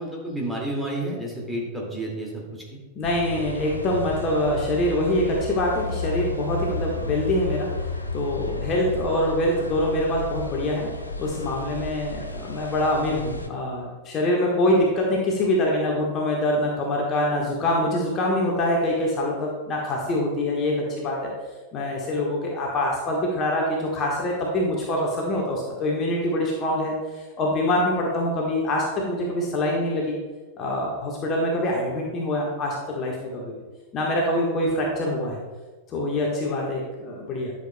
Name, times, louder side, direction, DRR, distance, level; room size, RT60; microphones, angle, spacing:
voice 1, 0.0-2.6, right 1 dB, 5° right, -3 dB, 2.2 m, -30 dB
voice 2, 2.9-7.7 8.1-10.9 11.2-21.3 21.7-30.2 30.6-33.5 33.9-35.4 35.9-37.5, left 1 dB, 30° left, -2 dB, 1.4 m, -25 dB
sound 1, 3.0-13.5, left 2 dB, 80° left, 0.6 m, -32 dB
11.5 x 6.8 x 2.2 m, 1.3 s
figure-of-eight pair, 90°, 0 cm